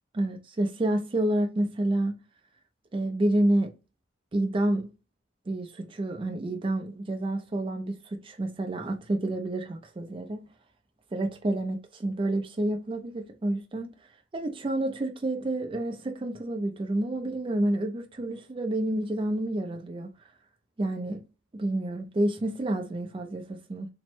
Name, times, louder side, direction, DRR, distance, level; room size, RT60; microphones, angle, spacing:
voice 1, 0.1-2.1 2.9-3.7 4.3-4.9 5.5-10.5 11.1-13.9 14.3-20.1 20.8-21.2 21.5-23.9, right 1 dB, 25° right, 0.3 m, -29 dB
3.0 x 2.1 x 3.0 m
head